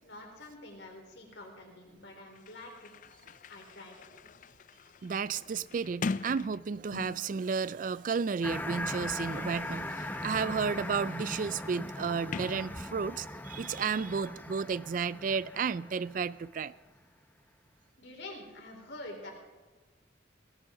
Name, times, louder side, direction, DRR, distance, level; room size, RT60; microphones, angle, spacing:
voice 1, 0.0-2.9 3.5-4.2 18.0-19.3, left 2 dB, 65° left, 4.0 m, -47 dB
Sliding door, 2.0-2.1 2.3-7.4 8.3-13.3, left 4 dB, 45° left, 0.4 m, -43 dB
voice 2, 5.0-16.7, right 5 dB, 45° right, 0.3 m, -32 dB
sound 1, 8.4-16.5, left 1 dB, 10° left, 0.7 m, -40 dB
18.0 x 16.0 x 3.8 m
head